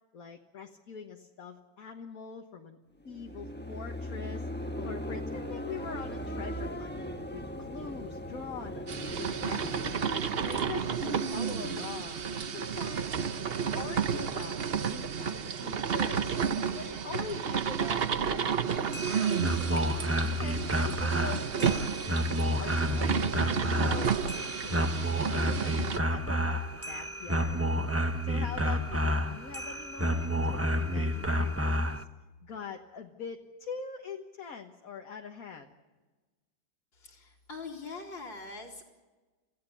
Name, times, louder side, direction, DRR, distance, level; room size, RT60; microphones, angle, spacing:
voice 1, 0.1-2.8 3.0-6.9 7.3-13.2 13.4-14.6 14.9-16.4 16.7-18.6 18.9-22.2 22.6-27.6 27.9-32.1 32.4-35.7, left 6 dB, 50° left, 3 dB, 1.7 m, -44 dB
sound 1, 3.0-12.1, equal, 5° left, 1.0 m, -39 dB
sound 2, 8.9-26.0, right 7 dB, 50° right, 0.7 m, -31 dB
sound 3, 18.8-32.0, equal, 15° right, 0.5 m, -30 dB
voice 2, 36.9-38.8, left 3 dB, 80° left, -1 dB, 3.8 m, -43 dB
27.5 x 16.5 x 8.4 m, 1.3 s
omnidirectional pair, 2.1 m